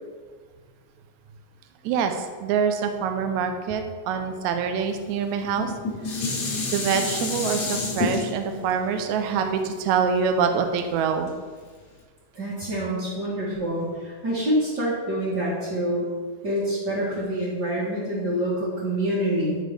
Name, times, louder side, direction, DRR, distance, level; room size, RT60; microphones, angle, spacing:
voice 1, 1.8-5.7 6.7-11.3, right 6 dB, 80° right, 6 dB, 1.8 m, -25 dB
Dishes pots and pans, 5.4-10.7 11.3-11.4, left 3 dB, 80° left, 0.9 m, -29 dB
voice 2, 12.3-16.1 16.4-19.6, right 1 dB, 40° right, -10 dB, 1.6 m, -26 dB
10.5 x 4.6 x 3.4 m, 1.5 s
omnidirectional pair, 3.9 m